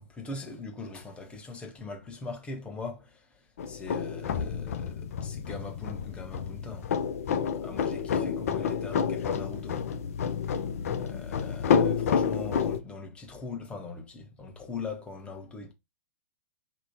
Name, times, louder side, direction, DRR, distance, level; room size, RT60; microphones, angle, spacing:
voice 1, 0.0-3.4 3.7-9.9 11.0-15.7, left 3 dB, 10° left, 0.8 m, -41 dB
sound 1, 3.6-12.8, left 7 dB, 65° left, 0.4 m, -29 dB
2.8 x 2.1 x 2.7 m
figure-of-eight pair, 110°, 9 cm